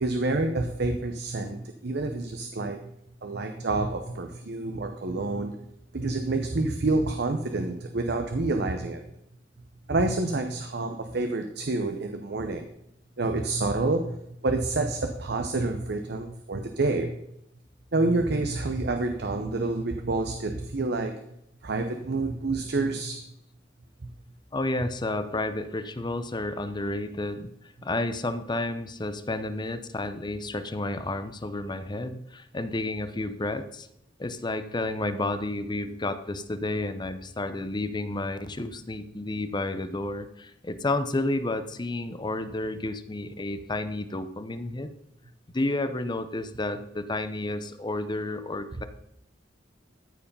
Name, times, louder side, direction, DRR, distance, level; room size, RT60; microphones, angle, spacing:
voice 1, 0.0-2.8 3.2-5.5 5.9-9.0 9.9-12.7 13.2-14.1 14.4-17.1 17.9-21.1 21.6-23.2, right 2 dB, 60° right, 6 dB, 0.8 m, -28 dB
voice 2, 24.5-27.5 27.8-33.9 34.2-44.9 45.5-48.8, left 2 dB, 25° left, 11 dB, 0.6 m, -31 dB
14.0 x 4.8 x 5.5 m, 0.79 s
head